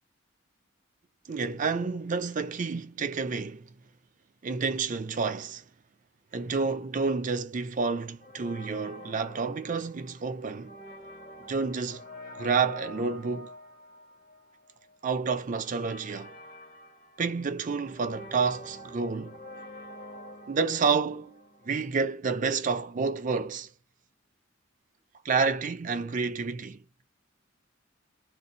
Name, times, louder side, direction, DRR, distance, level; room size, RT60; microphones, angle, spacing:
voice 1, 1.3-3.7 4.4-5.6 6.3-10.8 11.5-12.0 12.4-13.5 15.0-16.4 17.2-19.4 20.5-23.7 25.2-26.8, right 5 dB, 40° right, 0.4 m, -29 dB
sound 1, 8.2-22.0, left 1 dB, 45° left, 0.8 m, -47 dB
2.6 x 2.2 x 3.8 m
head